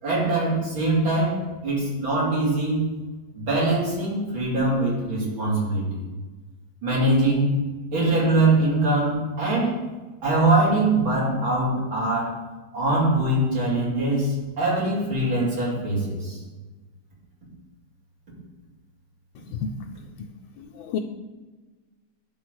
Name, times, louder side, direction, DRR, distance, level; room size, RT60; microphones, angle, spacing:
voice 1, 0.0-2.9 3.3-6.0 6.8-7.4 7.9-9.7 10.2-12.4 12.7-16.4, right 2 dB, 80° right, 4.1 m, -23 dB
voice 2, 20.6-21.0, left 6 dB, 85° left, 1.4 m, -30 dB
11.0 x 3.8 x 6.3 m
omnidirectional pair, 2.1 m